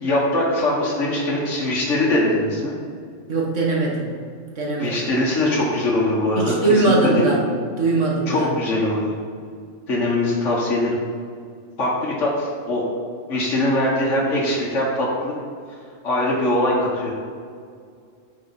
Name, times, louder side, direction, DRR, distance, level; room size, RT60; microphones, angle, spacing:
voice 1, 0.0-2.7 4.8-7.3 8.3-9.2 9.9-11.0 11.8-12.8 13.3-15.3 16.0-17.1, left 1 dB, 70° left, -4 dB, 1.8 m, -22 dB
voice 2, 3.3-4.1 4.6-5.0 6.4-7.4 7.8-8.5, right 2 dB, 70° right, -3 dB, 2.0 m, -20 dB
10.5 x 5.8 x 4.3 m, 2.2 s
omnidirectional pair, 1.3 m